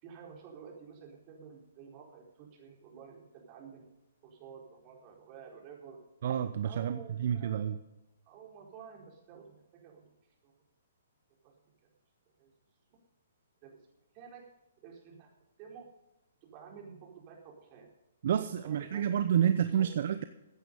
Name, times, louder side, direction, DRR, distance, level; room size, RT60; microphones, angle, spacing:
voice 1, 0.0-3.9 4.2-6.0 6.6-7.7 8.3-10.1 10.4-10.5 11.4-11.5 12.4-12.5 13.6-13.8 14.1-14.4 14.8-15.3 15.6-15.9 16.4-17.9 18.6-19.2 19.7-19.9, right 6 dB, 35° right, 0 dB, 4.4 m, -51 dB
voice 2, 6.2-7.8 18.2-20.2, right 9 dB, 60° right, 11 dB, 0.7 m, -29 dB
15.0 x 9.3 x 5.4 m, 0.96 s
hypercardioid pair, 130°, 0 cm